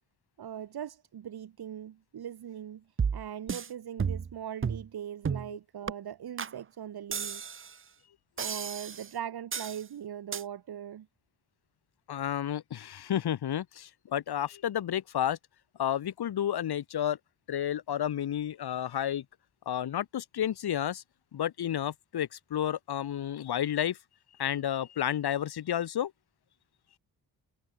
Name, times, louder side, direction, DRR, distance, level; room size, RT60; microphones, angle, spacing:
voice 1, 0.4-2.8 3.1-7.5 8.4-11.1, right 9 dB, 70° right, 2.7 m, -40 dB
sound 1, 3.0-3.7 4.0-4.3 4.6-4.9 5.2-5.5 5.9-6.0 6.4-6.5 7.1-7.7 8.4-9.1 9.5-9.8 10.3-10.4, right 6 dB, 30° right, 1.0 m, -32 dB
voice 2, 12.1-15.4 15.8-17.2 17.5-19.2 19.7-21.0 21.3-24.0 24.4-26.1, left 10 dB, 75° left, 1.8 m, -31 dB
wide cardioid pair, 150°, 39 cm